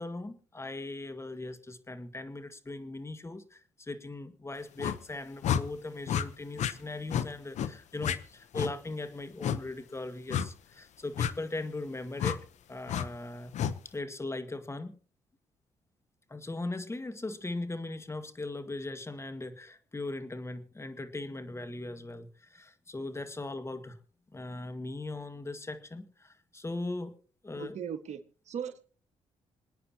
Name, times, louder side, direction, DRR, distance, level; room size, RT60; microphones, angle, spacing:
voice 1, 0.0-12.4 12.7-13.5 13.9-15.0 16.3-24.0 24.3-27.1 27.4-27.8, left 2 dB, 20° left, 1.9 m, -39 dB
sound 1, 4.8-5.0 5.4-5.6 6.1-6.2 6.6-6.7 7.1-7.3 7.5-7.7 8.0-8.2 8.5-8.7 9.4-9.6 10.3-10.5 11.2-11.3 12.2-12.4 12.9-13.1 13.5-13.7, left 9 dB, 75° left, 0.9 m, -30 dB
voice 2, 27.6-28.2 28.5-28.8, right 8 dB, 70° right, 1.6 m, -37 dB
27.0 x 9.3 x 2.9 m
supercardioid pair, 65°, 12 cm